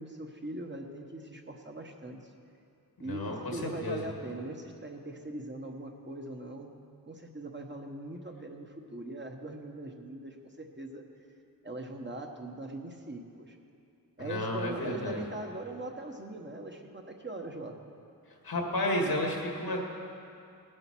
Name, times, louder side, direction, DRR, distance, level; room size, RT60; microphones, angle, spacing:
voice 1, 0.0-2.3 3.0-6.7 7.1-11.1 11.6-13.6 14.2-17.8, right 1 dB, 30° right, 2 dB, 1.2 m, -41 dB
voice 2, 3.0-4.1 14.2-15.2 18.4-19.9, left 1 dB, 90° left, 0 dB, 2.1 m, -32 dB
19.0 x 7.8 x 6.1 m, 2.6 s
wide cardioid pair, 75°, 36 cm